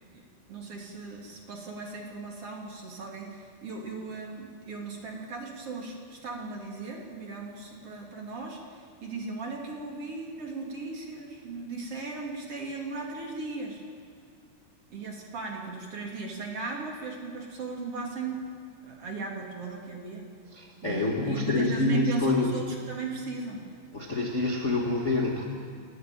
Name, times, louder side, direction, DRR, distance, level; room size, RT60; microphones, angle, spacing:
voice 1, 0.1-13.8 14.9-18.4 18.8-20.3 20.8-23.6, right 3 dB, 40° right, 0 dB, 2.9 m, -37 dB
voice 2, 20.6-22.6 23.9-25.5, left 2 dB, 60° left, -2 dB, 0.7 m, -26 dB
29.5 x 11.0 x 9.1 m, 2.2 s
omnidirectional pair, 4.8 m